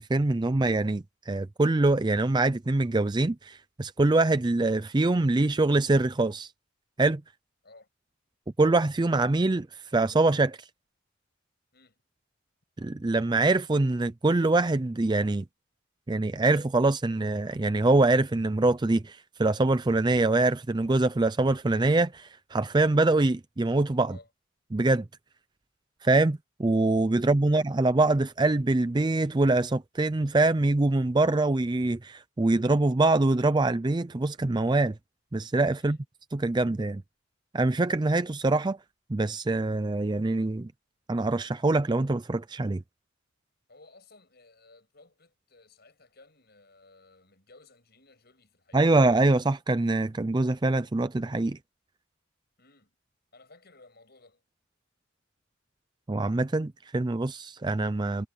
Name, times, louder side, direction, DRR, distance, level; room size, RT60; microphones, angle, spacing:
voice 1, 0.0-6.5 7.0-7.2 8.6-10.6 12.8-15.4 16.1-24.1 24.7-25.1 26.0-34.9 35.3-36.0 36.3-37.0 37.5-38.8 39.1-40.7 41.1-42.8 48.7-51.6 56.1-58.3, right 2 dB, 20° right, 0.4 m, -24 dB
voice 2, 27.2-27.8 35.8-36.0 43.7-49.0 52.6-52.9 53.3-54.4, left 3 dB, 50° left, 8.0 m, -57 dB
head